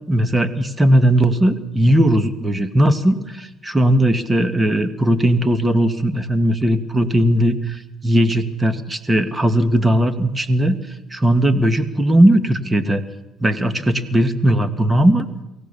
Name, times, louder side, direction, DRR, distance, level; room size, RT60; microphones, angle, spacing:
voice 1, 0.1-10.8 11.1-13.0 13.4-15.3, right 1 dB, 15° right, 9 dB, 2.1 m, -17 dB
23.5 x 17.0 x 7.1 m, 0.95 s
supercardioid pair, 80°, 0 cm